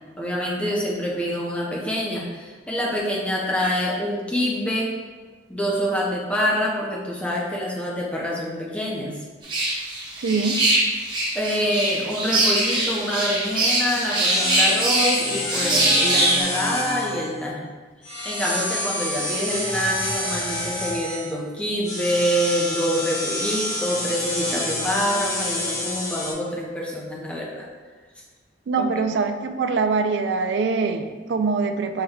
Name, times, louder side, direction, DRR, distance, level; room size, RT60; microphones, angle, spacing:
voice 1, 0.2-4.9 5.5-9.2 11.3-17.6 18.1-27.6 28.8-28.9, equal, 5° left, -4 dB, 0.6 m, -26 dB
sound 1, 9.4-16.4, right 2 dB, 25° right, 0.8 m, -22 dB
voice 2, 10.2-10.6 28.7-32.0, right 4 dB, 70° right, 7 dB, 0.3 m, -23 dB
sound 2, 13.5-13.7 14.3-17.4 18.0-21.3 21.8-26.3, left 1 dB, 90° left, 1.3 m, -28 dB
5.4 x 2.2 x 3.5 m, 1.4 s
head